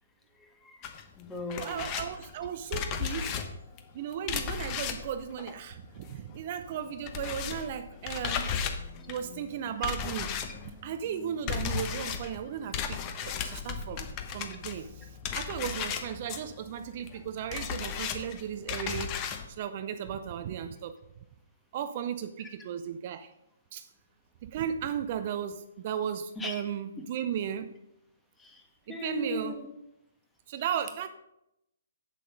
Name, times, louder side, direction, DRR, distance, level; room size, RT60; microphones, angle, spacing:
voice 1, 0.3-1.9 26.4-26.6 28.4-29.7, left 2 dB, 10° left, 3 dB, 1.3 m, -38 dB
sound 1, 0.8-6.4 6.6-19.5, left 7 dB, 25° left, 1.0 m, -36 dB
voice 2, 1.6-3.4 3.9-8.5 9.1-10.3 10.8-14.1 14.3-21.0 21.7-23.3 23.7-23.9 24.4-27.7 28.9-29.6 30.5-31.1, right 9 dB, 40° right, 9 dB, 0.6 m, -35 dB
8.4 x 7.6 x 5.2 m, 0.84 s
figure-of-eight pair, 130°, 0 cm